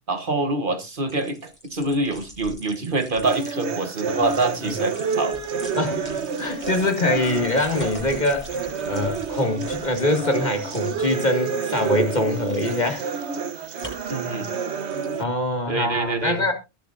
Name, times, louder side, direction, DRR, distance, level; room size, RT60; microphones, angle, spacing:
voice 1, 0.1-5.4 14.1-14.5 15.7-16.4, right 2 dB, 50° right, 1.4 m, -25 dB
sound 1, 1.0-3.5 4.1-10.3 10.6-11.0 11.5-12.9 13.8-14.2 14.5-15.2, equal, 10° left, 8.0 m, -43 dB
sound 2, 3.2-15.2, right 6 dB, 80° right, 1.3 m, -29 dB
voice 2, 5.7-6.1 6.4-13.1 15.2-16.5, left 2 dB, 40° left, 2.2 m, -24 dB
21.5 x 7.8 x 2.6 m
omnidirectional pair, 1.1 m